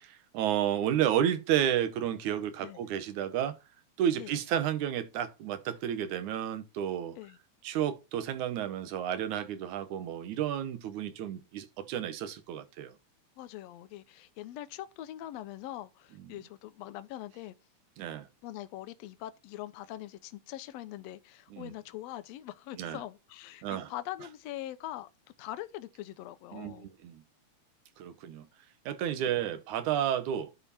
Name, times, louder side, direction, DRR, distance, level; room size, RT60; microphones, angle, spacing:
voice 1, 0.0-3.6 4.0-7.2 7.6-12.9 18.0-18.3 21.5-21.7 22.8-23.0 23.6-23.9 26.5-27.2 28.0-28.5 28.9-30.5, right 10 dB, 75° right, 2.4 m, -31 dB
voice 2, 13.4-17.5 18.4-25.1 25.4-26.9, left 14 dB, 75° left, 1.7 m, -42 dB
11.0 x 4.8 x 4.2 m
omnidirectional pair, 3.5 m